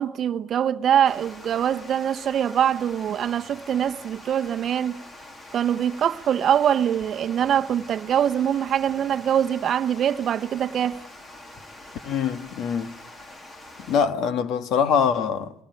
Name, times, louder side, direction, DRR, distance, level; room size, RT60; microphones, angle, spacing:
voice 1, 0.0-5.0 5.5-11.0, right 9 dB, 40° right, 0.9 m, -23 dB
Water, 1.0-14.1, left 1 dB, 20° left, 2.0 m, -45 dB
voice 2, 12.0-12.9 13.9-15.5, left 7 dB, 60° left, 1.5 m, -23 dB
24.5 x 19.0 x 9.2 m
cardioid pair, 140°, 0 cm